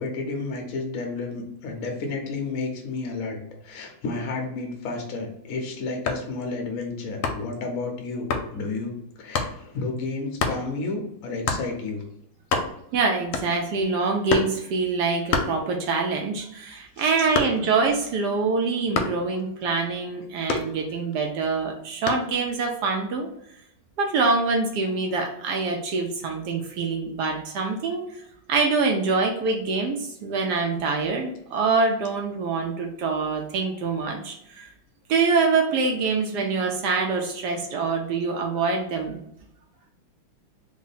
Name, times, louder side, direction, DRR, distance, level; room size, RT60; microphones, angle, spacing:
voice 1, 0.0-3.4 3.6-12.0 17.0-17.1, left 3 dB, 60° left, 2 dB, 0.9 m, -31 dB
sound 1, 6.0-6.3 7.2-7.6 8.3-8.5 9.3-9.6 10.4-10.6 11.5-11.7 12.1-12.2 12.4-12.9 13.3-13.7 14.3-14.6 15.3-16.1 16.4-17.8 18.9-19.3 20.5-21.2 22.1-22.3, left 4 dB, 75° left, 1.2 m, -27 dB
voice 2, 12.9-23.3 24.0-28.0 28.5-34.7 35.1-39.2, right 4 dB, 70° right, 2 dB, 1.0 m, -25 dB
3.5 x 2.1 x 3.9 m, 0.76 s
omnidirectional pair, 2.2 m